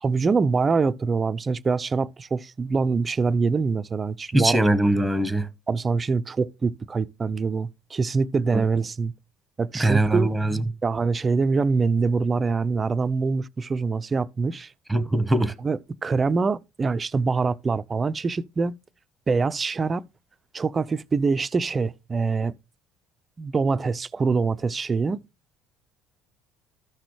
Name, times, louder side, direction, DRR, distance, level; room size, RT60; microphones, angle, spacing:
voice 1, 0.0-4.6 5.7-9.1 9.6-10.3 10.8-14.7 15.6-18.7 19.3-20.1 20.5-22.5 23.4-25.2, right 4 dB, 30° right, 0.5 m, -24 dB
voice 2, 4.3-5.5 8.5-8.6 9.8-10.6 14.9-15.5, right 1 dB, 5° right, 1.1 m, -21 dB
13.5 x 5.9 x 3.2 m
hypercardioid pair, 70°, 0 cm